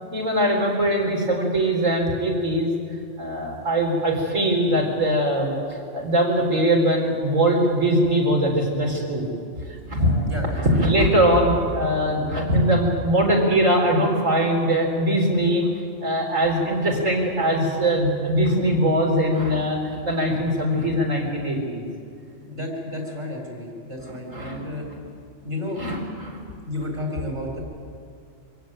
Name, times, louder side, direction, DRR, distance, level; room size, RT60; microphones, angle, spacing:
voice 1, 0.1-2.7 3.2-9.2 9.9-15.7 16.0-21.8 24.0-24.6 25.7-26.4, right 1 dB, 80° right, 0 dB, 4.6 m, -21 dB
voice 2, 10.2-10.8 22.4-24.9 25.4-25.8 26.7-27.6, left 1 dB, 50° right, -1 dB, 4.3 m, -32 dB
24.5 x 16.0 x 9.1 m, 2.3 s
omnidirectional pair, 1.3 m